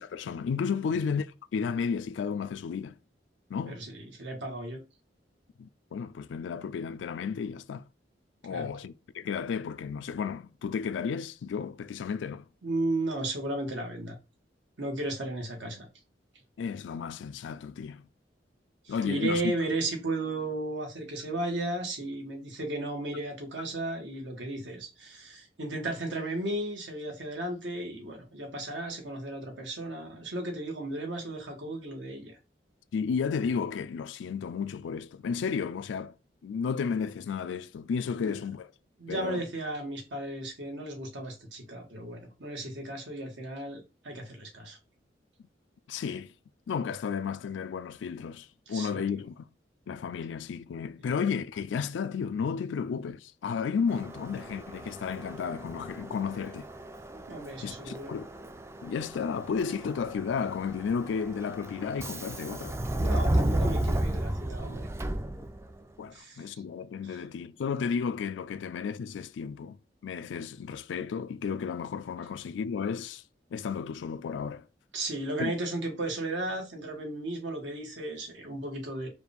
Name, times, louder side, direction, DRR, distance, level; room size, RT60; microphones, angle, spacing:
voice 1, 0.0-3.0 3.5-3.8 5.6-7.8 8.4-12.4 16.6-18.0 18.9-19.5 32.9-36.1 36.4-38.7 39.1-39.5 45.9-46.3 46.7-49.5 49.9-56.7 57.6-58.3 58.8-62.8 66.0-73.2 73.5-74.6 75.4-75.5, left 6 dB, 85° left, 0.3 m, -33 dB
voice 2, 3.7-4.8 8.5-8.7 12.6-14.2 14.8-15.9 18.8-32.3 38.1-38.3 39.0-44.8 48.7-49.1 57.3-58.2 63.0-64.9 66.1-66.4 67.1-67.2 74.9-79.1, right 2 dB, 85° right, 1.4 m, -34 dB
Subway metro underground, 53.9-65.8, right 1 dB, 15° right, 0.3 m, -33 dB
4.8 x 2.4 x 3.4 m
head